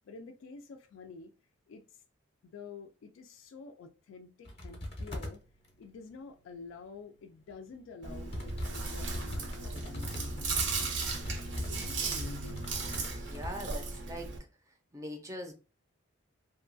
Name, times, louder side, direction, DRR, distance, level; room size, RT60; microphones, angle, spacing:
voice 1, 0.0-1.3 1.7-2.0 2.4-5.4 5.8-11.0 11.5-12.6, left 4 dB, 85° left, 0.3 m, -49 dB
sound 1, 4.5-5.4 7.5-7.6 8.3-13.6 13.9-14.0, left 1 dB, 30° left, 0.6 m, -40 dB
Chewing mastication, 8.0-14.4, right 4 dB, 65° right, 0.6 m, -36 dB
voice 2, 13.0-15.5, equal, 15° right, 0.5 m, -43 dB
2.8 x 2.3 x 2.5 m
head